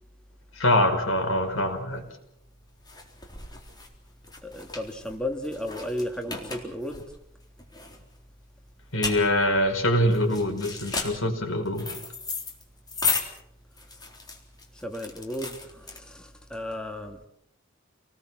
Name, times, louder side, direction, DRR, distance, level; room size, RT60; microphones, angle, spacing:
voice 1, 0.6-2.0 8.9-11.9, left 1 dB, 80° left, 4 dB, 5.3 m, -24 dB
sound 1, 2.0-16.4, left 4 dB, 20° left, 3.9 m, -35 dB
voice 2, 4.4-7.0 14.7-17.2, left 1 dB, 5° left, 3 dB, 2.2 m, -34 dB
29.0 x 20.0 x 6.2 m, 0.75 s
head